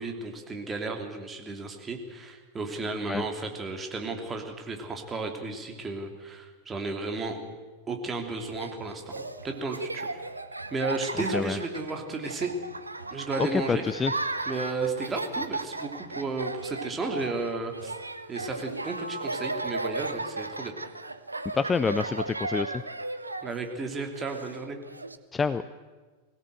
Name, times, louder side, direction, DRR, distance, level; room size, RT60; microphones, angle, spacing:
voice 1, 0.0-7.4 7.9-10.2 10.7-12.5 13.1-13.8 14.5-18.0 18.3-20.7 23.4-24.8, right 3 dB, 20° right, 4 dB, 3.1 m, -33 dB
Laughter, 8.4-25.2, right 2 dB, 80° right, 0.9 m, -35 dB
voice 2, 13.4-14.1 21.5-22.8 25.3-25.6, left 5 dB, 15° left, 14 dB, 0.6 m, -27 dB
21.5 x 17.0 x 7.9 m, 1.3 s
figure-of-eight pair, 90°, 0 cm